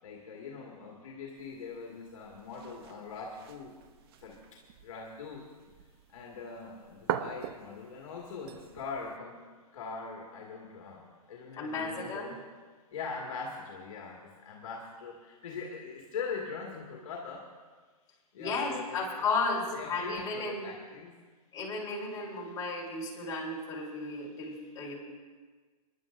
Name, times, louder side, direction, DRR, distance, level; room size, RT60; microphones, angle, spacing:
voice 1, 0.0-3.7 4.2-5.4 6.1-9.4 9.7-12.4 12.9-17.5 18.3-19.0 19.7-21.2, left 5 dB, 55° left, -2 dB, 2.1 m, -42 dB
sound 1, 1.4-9.2, right 11 dB, 40° right, 0.6 m, -43 dB
voice 2, 11.6-12.3 18.4-20.7 21.5-25.0, left 3 dB, 20° left, -5 dB, 4.4 m, -34 dB
29.5 x 11.0 x 2.6 m, 1.4 s
hypercardioid pair, 130°, 20 cm